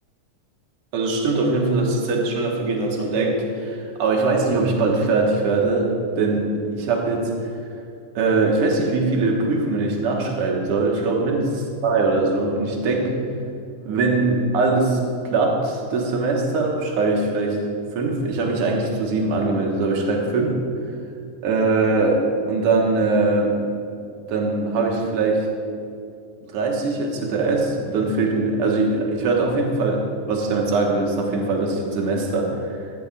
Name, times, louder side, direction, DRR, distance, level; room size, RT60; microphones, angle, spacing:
voice 1, 0.9-7.5 8.1-11.5 11.8-13.1 13.8-15.0 15.3-17.6 18.0-20.5 21.4-22.2 22.5-23.6 24.2-25.5 26.4-32.8, right 3 dB, 55° right, 0 dB, 2.1 m, -21 dB
14.5 x 14.5 x 2.5 m, 2.4 s
omnidirectional pair, 3.4 m